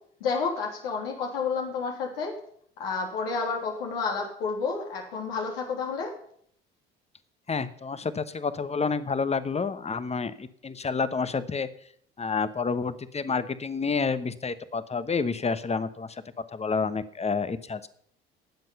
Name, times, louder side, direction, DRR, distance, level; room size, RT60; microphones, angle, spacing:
voice 1, 0.2-2.3 2.8-6.1, left 5 dB, 80° left, 0 dB, 3.2 m, -30 dB
voice 2, 7.5-11.7 12.2-16.2 16.5-17.9, left 5 dB, 20° left, 14 dB, 1.2 m, -29 dB
18.5 x 7.7 x 5.5 m, 0.65 s
hypercardioid pair, 60°, 29 cm